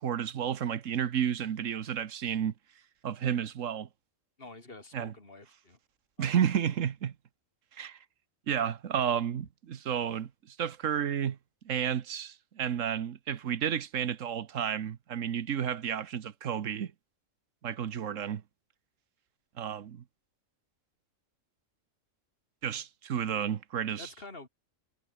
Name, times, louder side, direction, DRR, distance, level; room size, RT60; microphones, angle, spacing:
voice 1, 0.0-2.5 3.0-3.9 4.9-5.1 6.2-7.1 7.7-8.0 8.5-11.4 11.6-16.9 17.6-18.4 19.6-20.0 22.6-24.1, right 8 dB, 70° right, 1.4 m, -31 dB
voice 2, 4.4-5.8 6.2-6.4 24.0-24.5, left 2 dB, 45° left, 4.3 m, -48 dB
omnidirectional pair, 1.4 m